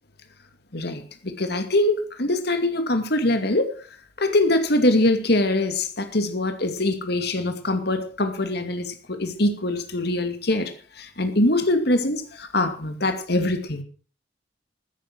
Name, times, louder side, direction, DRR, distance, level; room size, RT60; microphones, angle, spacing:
voice 1, 0.7-3.8 4.2-13.8, left 1 dB, 60° left, 2.4 m, -23 dB
15.0 x 10.0 x 6.0 m
head